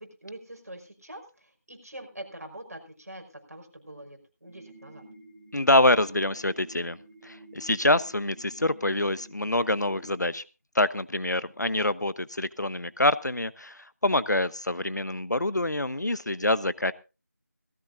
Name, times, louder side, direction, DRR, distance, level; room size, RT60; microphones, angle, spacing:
voice 1, 0.0-5.1, right 1 dB, 55° right, 3 dB, 5.4 m, -44 dB
sound 1, 4.5-10.3, right 1 dB, 25° right, 2.2 m, -50 dB
voice 2, 5.5-7.0 7.2-10.4 10.7-16.9, left 1 dB, 75° left, 15 dB, 1.0 m, -26 dB
18.5 x 16.0 x 2.6 m, 0.31 s
figure-of-eight pair, 175°, 10 cm